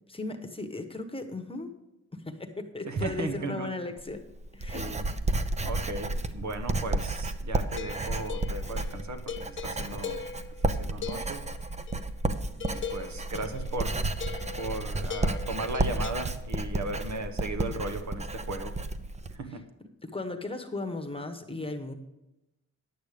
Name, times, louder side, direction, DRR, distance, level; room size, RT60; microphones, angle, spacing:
voice 1, 0.1-1.7 2.1-4.2 4.5-4.9 20.0-21.9, left 2 dB, 15° left, 7 dB, 1.1 m, -36 dB
voice 2, 2.8-3.7 4.7-5.0 5.6-10.2 10.6-11.4 12.7-14.0 14.6-18.8 19.3-19.6, right 2 dB, 65° right, 7 dB, 1.2 m, -36 dB
Writing, 4.0-19.4, right 2 dB, 20° right, 0.7 m, -32 dB
sound 1, 7.7-12.1 12.6-16.1, left 6 dB, 40° left, 0.5 m, -40 dB
10.0 x 8.2 x 5.0 m, 0.95 s
cardioid pair, 85°, 31 cm